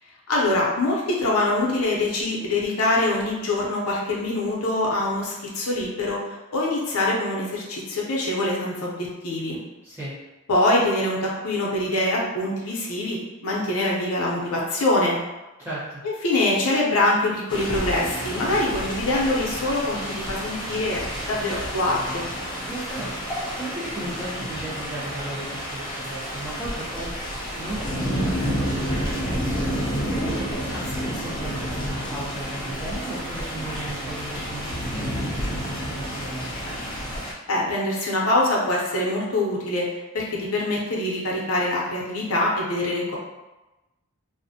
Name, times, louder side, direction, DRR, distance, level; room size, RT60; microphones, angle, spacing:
voice 1, 0.3-9.6 10.5-15.2 16.0-21.0 21.3-22.3 37.5-39.9 40.1-43.2, left 2 dB, 75° left, -3 dB, 0.6 m, -24 dB
voice 2, 9.8-10.1 15.6-16.0 22.7-36.5, right 1 dB, 10° right, -11 dB, 0.9 m, -36 dB
sound 1, 17.5-37.3, equal, 20° left, 0.4 m, -30 dB
2.4 x 2.0 x 2.6 m, 1.0 s
head